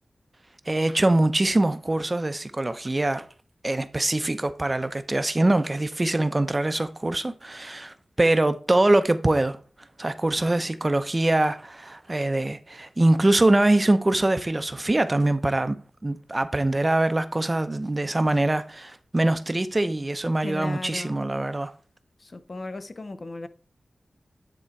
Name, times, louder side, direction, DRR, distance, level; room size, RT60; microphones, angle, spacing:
voice 1, 0.7-3.3 3.6-9.6 10.0-21.7, right 2 dB, 25° right, 0.6 m, -23 dB
voice 2, 20.4-21.2 22.2-23.5, left 2 dB, 45° left, 0.6 m, -36 dB
9.9 x 3.8 x 4.5 m
wide cardioid pair, 75°, 0 cm